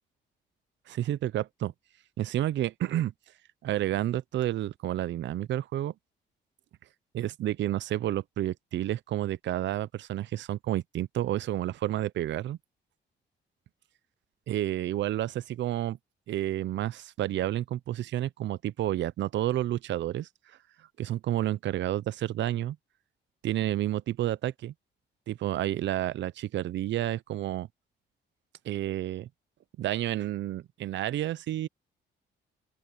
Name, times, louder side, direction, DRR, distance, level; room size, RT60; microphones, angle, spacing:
voice 1, 0.9-1.7 2.2-3.1 3.6-5.9 7.1-12.6 14.5-16.0 16.3-20.3 21.0-22.8 23.4-24.7 25.3-27.7 28.7-29.3 29.8-31.7, right 13 dB, 65° right, 0.6 m, -30 dB
open air
cardioid pair, 90°, 20 cm